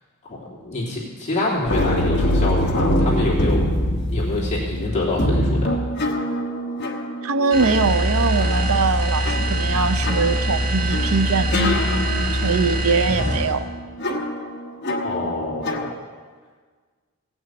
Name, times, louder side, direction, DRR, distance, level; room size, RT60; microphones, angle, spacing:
voice 1, 0.3-3.7 4.1-5.7 15.0-15.9, left 2 dB, 30° left, -6 dB, 3.0 m, -26 dB
sound 1, 1.7-15.9, left 1 dB, 50° left, 1.2 m, -25 dB
voice 2, 7.2-11.9 12.4-13.6, right 4 dB, 75° right, 11 dB, 0.7 m, -22 dB
sound 2, 7.5-13.6, right 1 dB, 30° right, 2.4 m, -23 dB
17.0 x 6.2 x 8.0 m, 1.5 s
head